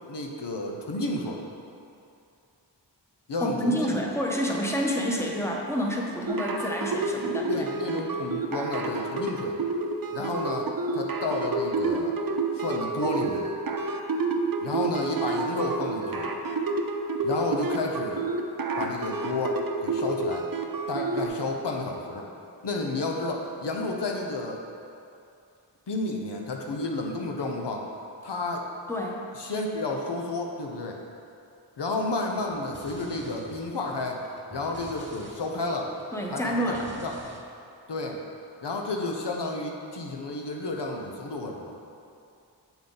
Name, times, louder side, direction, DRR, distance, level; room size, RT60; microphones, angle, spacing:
voice 1, 0.1-1.4 3.3-4.0 7.5-9.6 10.1-12.2 12.5-13.5 14.6-16.3 17.2-18.3 18.8-20.4 20.9-22.3 22.6-24.6 25.9-27.9 28.2-28.7 29.3-31.0 31.8-34.2 34.5-35.9 36.3-37.1 37.9-38.2 38.6-41.8, left 2 dB, 75° left, 1 dB, 0.8 m, -31 dB
voice 2, 3.4-7.7 28.9-29.2 36.1-36.9, equal, 5° left, -1 dB, 1.0 m, -28 dB
sound 1, 6.3-21.3, right 3 dB, 50° right, 0.7 m, -29 dB
sound 2, 32.3-37.4, right 1 dB, 25° right, 1.1 m, -48 dB
7.2 x 5.7 x 3.8 m, 2.6 s
cardioid pair, 45°, 42 cm